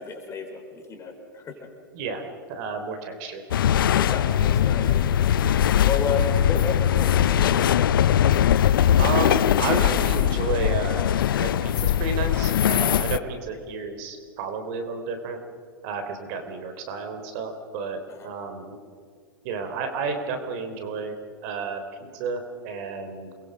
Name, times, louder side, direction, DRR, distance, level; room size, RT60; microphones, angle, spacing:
voice 1, 0.0-1.7 3.9-5.1 5.8-7.8 13.2-13.3 18.1-18.3, left 5 dB, 25° left, 3 dB, 4.8 m, -32 dB
voice 2, 2.5-3.4 9.0-11.1 11.4-15.4 15.8-18.8 19.4-21.1 21.4-23.3, right 4 dB, 50° right, 7 dB, 3.5 m, -31 dB
sound 1, 3.5-13.2, left 10 dB, 70° left, 0.8 m, -21 dB
29.0 x 22.0 x 5.2 m, 2.1 s
hypercardioid pair, 115°, 12 cm